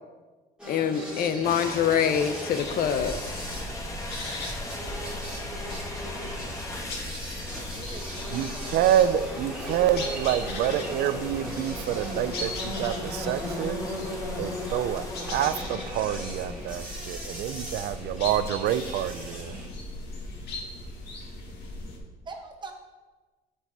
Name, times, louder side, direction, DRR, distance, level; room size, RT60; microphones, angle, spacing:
sound 1, 0.6-19.7, left 1 dB, 5° right, 2.3 m, -38 dB
voice 1, 0.7-3.2, left 8 dB, 60° left, 9 dB, 0.7 m, -25 dB
sound 2, 1.4-15.6, left 1 dB, 20° left, 1.3 m, -40 dB
sound 3, 2.6-22.0, left 1 dB, 75° left, 1.7 m, -38 dB
voice 2, 7.7-8.8 22.2-22.7, right 3 dB, 25° right, 3 dB, 1.2 m, -43 dB
voice 3, 8.3-13.8 14.4-19.5, right 10 dB, 75° right, 14 dB, 0.4 m, -27 dB
7.0 x 6.2 x 4.3 m, 1.3 s
cardioid pair, 110°, 17 cm